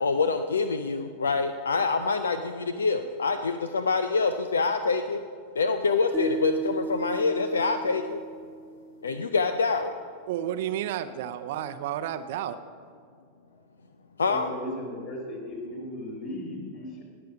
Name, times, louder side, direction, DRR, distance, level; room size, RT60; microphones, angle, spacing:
voice 1, 0.0-5.2 5.6-8.2 9.0-9.9 14.2-14.5, left 4 dB, 70° left, 9 dB, 0.5 m, -26 dB
sound 1, 6.1-9.3, right 4 dB, 20° right, 0.7 m, -35 dB
voice 2, 10.3-12.6, right 11 dB, 55° right, 10 dB, 0.6 m, -31 dB
voice 3, 14.2-17.0, left 1 dB, 40° left, -1 dB, 4.0 m, -36 dB
19.5 x 6.8 x 5.1 m, 2.2 s
figure-of-eight pair, 90°, 0 cm